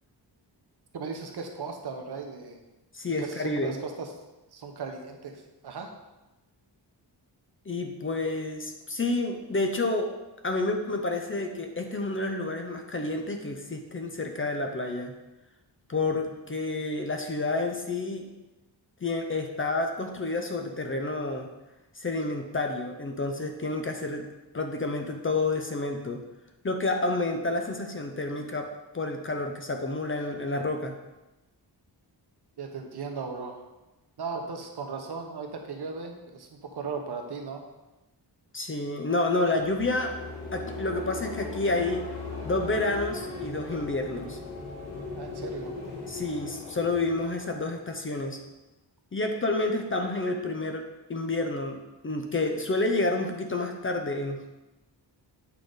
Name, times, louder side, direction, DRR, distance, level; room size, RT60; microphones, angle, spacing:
voice 1, 0.9-2.6 3.2-4.1 4.5-5.9 32.6-33.6 34.2-37.6 45.2-45.8, right 4 dB, 65° right, 3 dB, 1.0 m, -37 dB
voice 2, 2.9-3.7 7.7-10.1 10.4-15.1 15.9-18.3 19.0-21.5 22.0-24.3 24.5-26.2 26.6-30.9 38.5-40.2 40.5-42.1 42.4-44.4 46.1-48.4 49.1-51.8 52.0-54.5, left 2 dB, 30° left, 4 dB, 0.6 m, -29 dB
sound 1, 39.3-48.4, left 3 dB, 70° left, 2.2 m, -38 dB
8.3 x 4.9 x 4.0 m, 1.0 s
wide cardioid pair, 165°, 43 cm